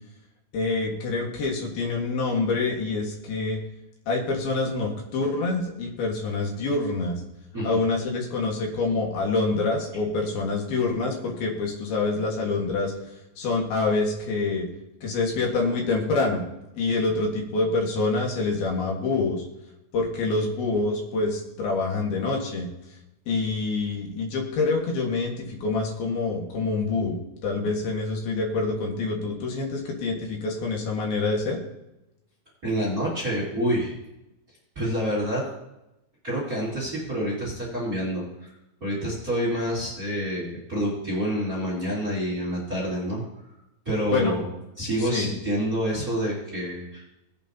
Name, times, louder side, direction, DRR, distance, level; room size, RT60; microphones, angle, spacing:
voice 1, 0.5-3.6 4.1-7.2 7.6-12.9 13.4-14.7 15.0-16.4 16.7-19.5 19.9-22.7 23.3-27.2 27.4-31.6 44.0-44.4 45.0-45.3, left 3 dB, 60° left, 0 dB, 3.0 m, -26 dB
voice 2, 32.6-34.0 34.7-35.5 36.2-38.5 38.8-43.2 43.8-44.5 44.8-47.0, equal, 25° right, -4 dB, 2.3 m, -27 dB
19.0 x 8.4 x 2.8 m, 0.91 s
omnidirectional pair, 5.9 m